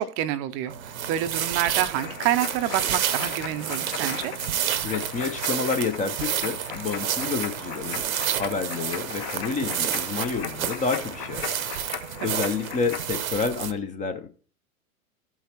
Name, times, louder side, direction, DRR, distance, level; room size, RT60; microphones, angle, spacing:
voice 1, 0.0-4.3 12.2-12.3, right 12 dB, 30° right, 0.6 m, -27 dB
sound 1, 0.7-13.7, right 9 dB, 70° right, 0.8 m, -30 dB
sound 2, 2.0-13.0, left 8 dB, 45° left, 1.4 m, -38 dB
voice 2, 4.8-8.0 8.3-14.3, left 5 dB, 15° left, 0.6 m, -29 dB
14.0 x 5.6 x 2.9 m
figure-of-eight pair, 95°, 43 cm